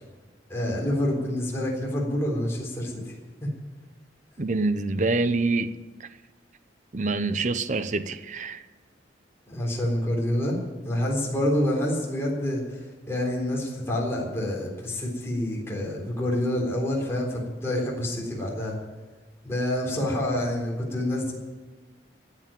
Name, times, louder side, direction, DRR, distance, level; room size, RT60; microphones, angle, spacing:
voice 1, 0.5-3.1 3.4-3.5 9.5-10.5 10.9-18.8 19.4-21.3, left 1 dB, 15° left, 3.8 m, -27 dB
voice 2, 4.4-5.7 6.0-6.1 6.9-8.6, right 3 dB, 40° right, 0.7 m, -26 dB
16.0 x 8.4 x 9.1 m
head